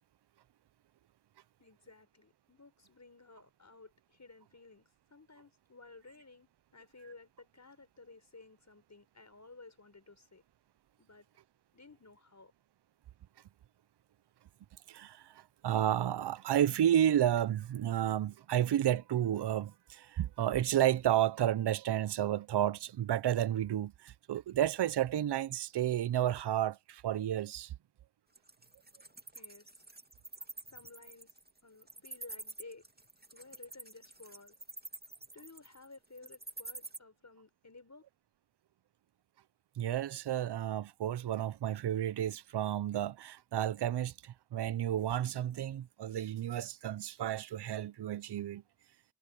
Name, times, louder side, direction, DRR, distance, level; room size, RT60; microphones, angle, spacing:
voice 1, 1.6-10.4 11.0-11.3 11.7-12.5 29.3-29.8 30.7-31.3 31.6-32.8 33.3-34.6 35.3-38.0, left 3 dB, 40° left, 6.1 m, -55 dB
voice 2, 14.9-27.7 39.8-48.6, right 11 dB, 65° right, 0.7 m, -31 dB
Wild animals, 28.3-37.0, right 2 dB, 20° right, 2.6 m, -47 dB
cardioid pair, 45°, 42 cm